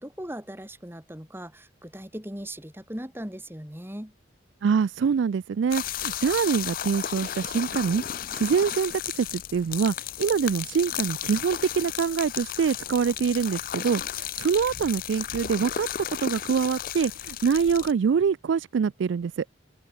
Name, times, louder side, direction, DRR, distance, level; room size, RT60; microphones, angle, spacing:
voice 1, 0.0-4.1, right 1 dB, 10° right, 3.1 m, -38 dB
voice 2, 4.6-8.0 8.3-15.9 16.2-19.4, right 6 dB, 65° right, 0.3 m, -25 dB
sound 1, 5.7-17.9, left 11 dB, 45° left, 0.4 m, -34 dB
open air
head